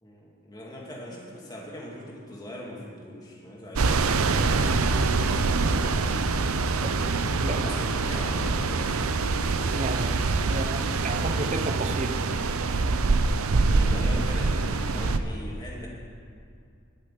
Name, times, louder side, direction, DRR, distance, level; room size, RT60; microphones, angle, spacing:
voice 1, 0.0-4.0 7.3-9.9 13.7-15.9, equal, 20° left, -3 dB, 2.3 m, -41 dB
sound 1, 3.8-15.2, right 3 dB, 80° right, 0.7 m, -25 dB
voice 2, 9.7-12.2, right 2 dB, 30° right, 8 dB, 0.7 m, -32 dB
14.0 x 6.5 x 9.8 m, 2.4 s
head